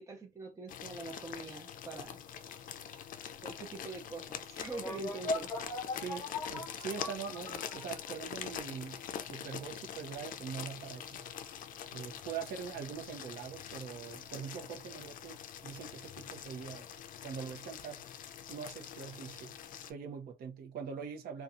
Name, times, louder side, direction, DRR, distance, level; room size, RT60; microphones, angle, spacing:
voice 1, 0.0-2.2 3.4-5.6, right 3 dB, 20° right, 0.7 m, -44 dB
sound 1, 0.7-19.9, left 9 dB, 55° left, 0.4 m, -45 dB
sound 2, 4.7-8.2, left 2 dB, 20° left, 0.8 m, -39 dB
voice 2, 5.9-9.0 9.3-11.2 11.9-16.9 17.2-18.0 18.5-19.5 19.9-21.4, right 7 dB, 65° right, 0.8 m, -43 dB
2.7 x 2.3 x 2.4 m
cardioid pair, 110°, 17 cm